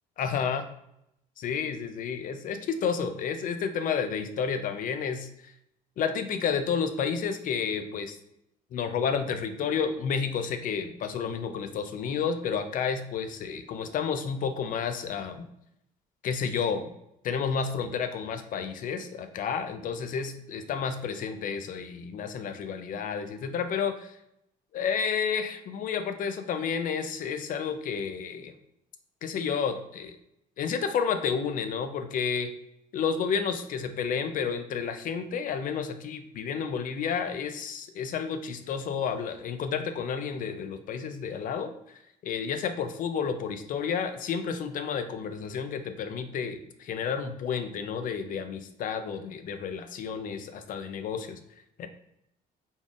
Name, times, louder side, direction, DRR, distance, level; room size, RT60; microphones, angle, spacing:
voice 1, 0.2-0.7 1.4-5.5 6.0-8.2 8.7-15.5 16.2-16.9 17.2-24.2 24.7-28.5 29.2-30.1 30.6-32.5 32.9-41.7 42.2-51.4 51.8-51.9, left 6 dB, 55° left, 8 dB, 0.4 m, -31 dB
3.9 x 3.5 x 2.4 m, 0.80 s
cardioid pair, 110°, 17 cm